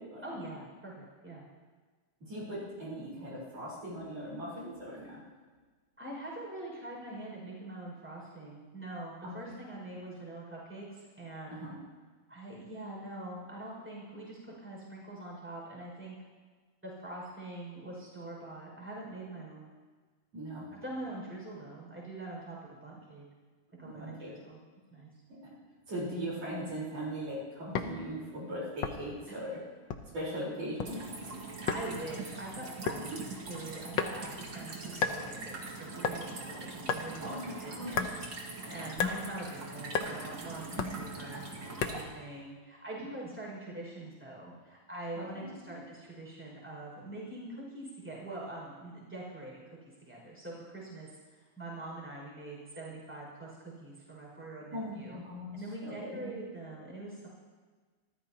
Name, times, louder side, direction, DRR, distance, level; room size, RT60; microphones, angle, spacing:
voice 1, 0.2-1.4 6.0-11.6 12.3-16.2 16.8-19.7 20.7-22.6 22.8-23.2 23.8-24.6 24.9-25.1 29.3-29.4 31.7-33.2 33.5-38.1 38.4-41.4 41.8-49.8 50.1-55.2 55.5-57.3, right 2 dB, 5° right, -4 dB, 5.6 m, -44 dB
voice 2, 2.2-5.2 9.2-9.6 11.5-11.7 20.3-20.7 23.8-24.3 25.9-29.6 30.1-31.3 33.1-33.2 37.2-38.1 38.6-38.8 40.7-41.0 45.2-45.5 54.7-55.6 55.8-56.3, equal, 55° right, -6 dB, 5.4 m, -39 dB
sound 1, 27.7-28.0 28.8-29.2 29.9-30.2 30.6-30.9 31.7-31.9 32.9-33.1 34.0-34.4 35.0-35.2 36.0-36.2 36.9-37.1 37.9-38.2 39.0-39.2 39.9-40.1 40.8-41.0 41.8-42.1, left 6 dB, 70° left, 1.1 m, -32 dB
sound 2, 30.8-42.0, right 3 dB, 40° right, 2.5 m, -43 dB
27.0 x 14.5 x 2.9 m, 1.4 s
omnidirectional pair, 3.3 m